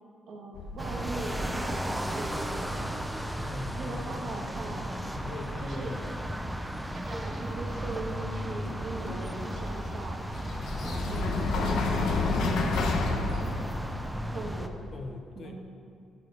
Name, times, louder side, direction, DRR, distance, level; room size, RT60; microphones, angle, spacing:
voice 1, 0.3-2.8 3.8-4.9 5.6-6.0 6.9-10.2 10.8-13.5 14.3-14.7 15.3-15.5, right 2 dB, 60° right, 0 dB, 1.7 m, -39 dB
sound 1, 0.5-14.9, left 3 dB, 75° left, 1.0 m, -34 dB
sound 2, 0.8-14.7, right 1 dB, 5° right, 0.7 m, -35 dB
voice 2, 3.4-4.1 5.1-6.0 10.6-11.0 14.9-15.5, left 3 dB, 55° left, 4 dB, 1.0 m, -41 dB
10.5 x 6.2 x 5.6 m, 2.5 s
cardioid pair, 90°, 0 cm